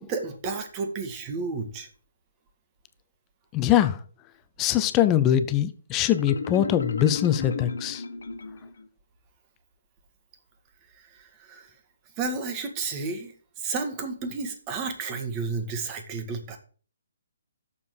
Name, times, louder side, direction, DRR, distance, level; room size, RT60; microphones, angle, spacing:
voice 1, 0.0-1.9 10.9-11.7 12.2-16.6, right 4 dB, 25° right, 1.5 m, -32 dB
voice 2, 3.5-4.0 4.6-8.0, left 11 dB, 20° left, 0.6 m, -22 dB
Marimba xylophone, 6.1-8.9, left 4 dB, 75° left, 1.3 m, -34 dB
6.9 x 5.2 x 6.2 m
hypercardioid pair, 145°, 0 cm